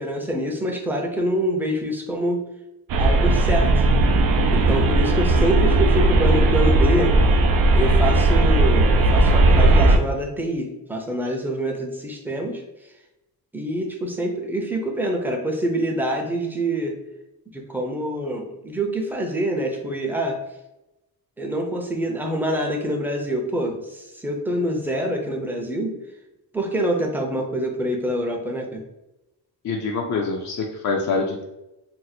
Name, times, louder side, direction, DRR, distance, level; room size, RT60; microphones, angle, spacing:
voice 1, 0.0-2.4 3.0-3.8 4.5-7.2 7.7-12.6 13.5-17.0 17.5-20.4 21.4-26.0 26.5-28.8, right 1 dB, 5° right, 1 dB, 0.6 m, -25 dB
sound 1, 2.9-10.0, right 2 dB, 55° right, 0.5 m, -17 dB
voice 2, 29.6-31.4, left 4 dB, 45° left, 0 dB, 0.5 m, -25 dB
2.8 x 2.0 x 4.0 m, 0.95 s
cardioid pair, 75°, 41 cm